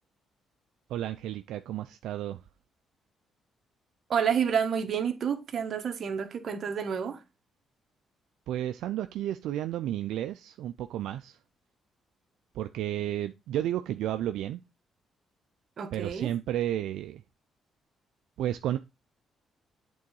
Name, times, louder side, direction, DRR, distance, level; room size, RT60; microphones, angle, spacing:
voice 1, 0.9-2.4 8.5-11.4 12.5-14.6 15.9-17.2 18.4-18.8, right 12 dB, 85° right, 0.4 m, -32 dB
voice 2, 4.1-7.2 15.8-16.3, right 7 dB, 55° right, 1.4 m, -29 dB
8.5 x 3.8 x 4.7 m
cardioid pair, 90°, 0 cm